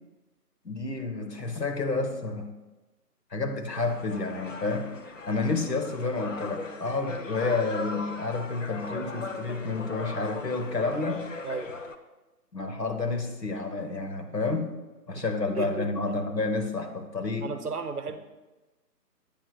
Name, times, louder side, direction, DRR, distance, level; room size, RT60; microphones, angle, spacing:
voice 1, 0.6-2.5 3.3-4.9 5.3-11.2 12.5-14.7 15.1-17.5, left 3 dB, 80° left, 5 dB, 1.2 m, -30 dB
sound 1, 3.7-12.0, left 3 dB, 50° left, 0.5 m, -39 dB
voice 2, 15.5-15.9 17.4-18.2, right 5 dB, 65° right, 9 dB, 0.8 m, -34 dB
8.5 x 3.0 x 6.3 m, 1.1 s
figure-of-eight pair, 150°, 48 cm